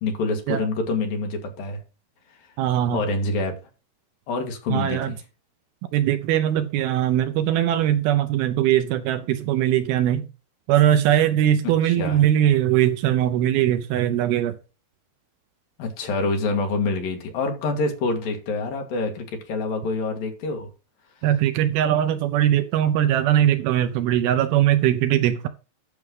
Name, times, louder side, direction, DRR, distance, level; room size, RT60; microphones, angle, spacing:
voice 1, 0.0-1.8 2.9-3.5 4.3-5.2 11.8-12.2 15.8-20.7, left 3 dB, 65° left, 3.4 m, -26 dB
voice 2, 2.6-3.0 4.7-5.1 5.9-10.3 10.7-14.6 21.2-25.5, right 11 dB, 75° right, 2.5 m, -20 dB
12.0 x 6.3 x 3.8 m
omnidirectional pair, 4.7 m